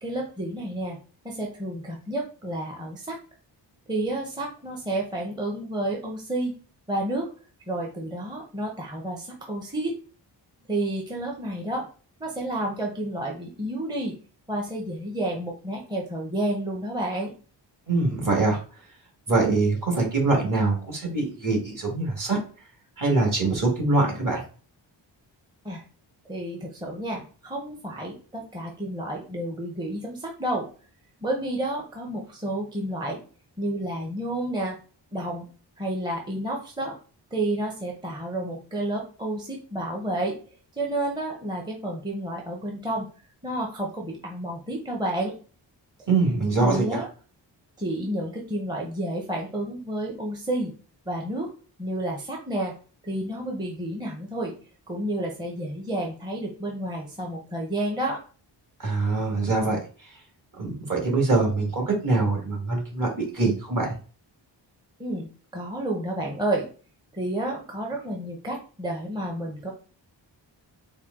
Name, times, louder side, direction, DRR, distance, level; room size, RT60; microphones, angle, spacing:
voice 1, 0.0-1.0 1.2-3.2 3.9-6.5 6.9-7.3 7.7-10.0 10.7-11.8 12.2-14.1 14.5-17.3 25.6-25.8 26.3-30.7 31.2-33.2 33.6-34.8 35.1-35.5 35.8-36.9 37.3-40.4 40.8-43.1 43.4-45.3 46.6-47.1 47.8-50.7 51.1-51.5 51.8-52.7 53.0-54.5 54.9-58.2 65.0-66.7 67.1-69.7, right 1 dB, 10° right, -1 dB, 0.7 m, -30 dB
voice 2, 17.9-18.6 19.3-22.4 23.0-24.4 46.1-47.0 58.8-59.8 60.6-63.9, right 3 dB, 45° right, 0 dB, 1.5 m, -23 dB
4.4 x 2.2 x 3.6 m, 0.38 s
wide cardioid pair, 105°, 45 cm